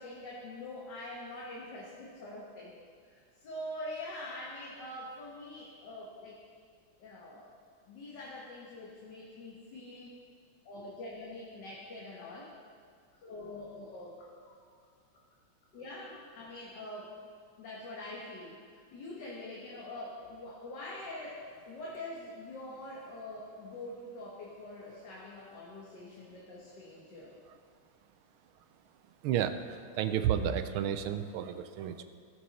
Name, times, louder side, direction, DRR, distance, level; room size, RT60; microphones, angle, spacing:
voice 1, 0.0-2.8 3.0-6.4 7.0-7.6 7.8-10.1 10.7-12.5 13.2-14.6 15.7-17.1 17.6-27.3, left 1 dB, 55° left, -4 dB, 1.9 m, -44 dB
voice 2, 30.0-32.0, right 9 dB, 80° right, 9 dB, 1.5 m, -31 dB
18.0 x 7.2 x 4.2 m, 2.1 s
omnidirectional pair, 2.3 m